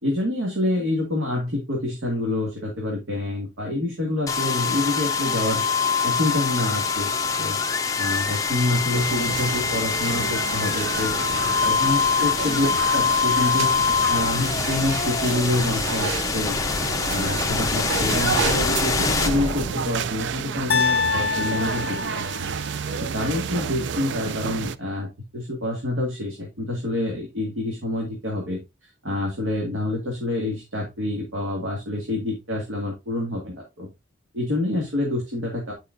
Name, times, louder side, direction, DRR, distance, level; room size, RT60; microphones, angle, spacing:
voice 1, 0.0-7.6 8.0-13.8 14.1-16.6 17.1-22.2 23.0-25.1 25.3-28.6 29.0-33.9 34.3-35.7, left 1 dB, 85° right, -1 dB, 2.2 m, -27 dB
sound 1, 4.3-20.1, left 5 dB, 15° left, 0.8 m, -24 dB
sound 2, 8.9-24.8, right 7 dB, 65° right, 0.4 m, -30 dB
sound 3, 20.7-22.8, left 5 dB, 55° left, 0.5 m, -25 dB
8.7 x 5.7 x 2.6 m, 0.23 s
head